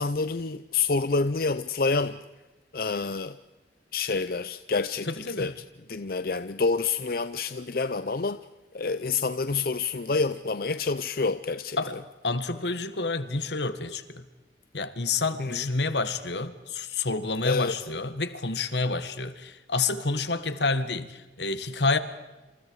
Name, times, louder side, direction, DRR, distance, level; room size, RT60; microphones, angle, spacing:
voice 1, 0.0-2.2 2.7-3.4 3.9-5.5 5.9-8.4 8.7-11.8 15.4-15.6 17.4-17.7, left 4 dB, 55° left, 0.7 m, -28 dB
voice 2, 5.1-5.6 11.8-12.0 12.2-14.3 14.7-22.0, left 3 dB, 80° left, 1.8 m, -29 dB
27.5 x 27.5 x 4.8 m
head